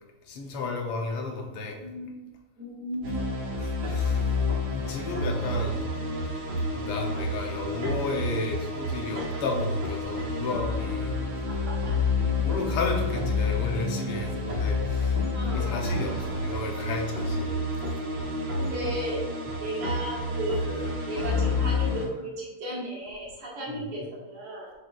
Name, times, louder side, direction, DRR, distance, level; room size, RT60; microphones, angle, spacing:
voice 1, 0.3-1.9 3.6-4.5 4.7-5.8 6.8-11.2 12.4-17.5 17.9-18.0 23.7-23.9, left 3 dB, 85° left, 1 dB, 2.0 m, -33 dB
voice 2, 1.8-2.2 2.6-3.3 5.4-5.6 11.5-12.0 15.3-16.1 18.5-19.2 19.6-24.7, equal, 80° right, -5 dB, 2.9 m, -35 dB
sound 1, 3.0-22.1, left 2 dB, 55° right, 2.2 m, -29 dB
6.4 x 6.4 x 2.6 m, 1.1 s
omnidirectional pair, 2.4 m